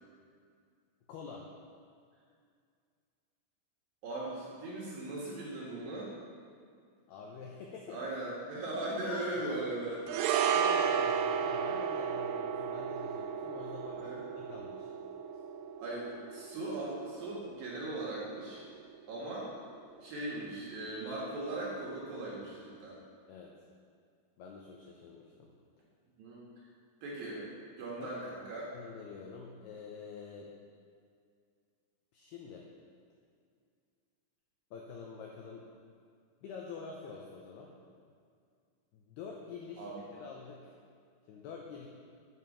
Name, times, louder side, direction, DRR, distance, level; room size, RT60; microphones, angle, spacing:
voice 1, 1.1-1.5 7.1-8.0 9.0-9.4 10.2-14.9 23.3-23.6 24.4-25.5 28.0-28.1 28.7-30.5 32.1-32.7 34.7-35.7 36.4-37.7 38.9-40.8 41.3-41.9, left 5 dB, 85° left, 0 dB, 2.3 m, -47 dB
voice 2, 4.0-6.1 7.9-10.6 13.9-14.2 15.8-18.6 19.1-19.5 20.0-23.0 26.2-26.4 27.0-27.4 27.8-28.7 39.8-40.0, right 2 dB, 60° right, -5 dB, 2.7 m, -39 dB
sound 1, 10.1-18.6 18.8-19.0, right 7 dB, 90° right, 3.3 m, -33 dB
11.0 x 6.1 x 7.2 m, 2.2 s
omnidirectional pair, 5.7 m